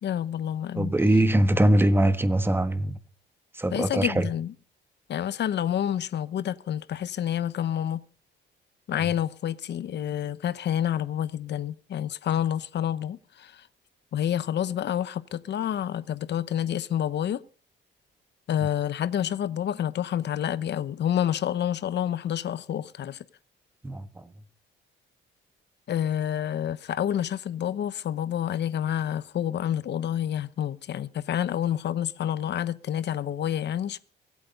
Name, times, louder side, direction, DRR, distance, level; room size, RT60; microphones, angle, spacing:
voice 1, 0.0-0.9 3.7-4.5 5.1-8.0 8.9-13.7 14.1-17.4 18.5-23.2 25.9-34.0, left 10 dB, 60° left, 1.0 m, -28 dB
voice 2, 0.7-3.0 3.5-4.3 23.8-24.3, right 1 dB, 10° right, 1.4 m, -22 dB
23.5 x 8.7 x 5.3 m
cardioid pair, 90°, 20 cm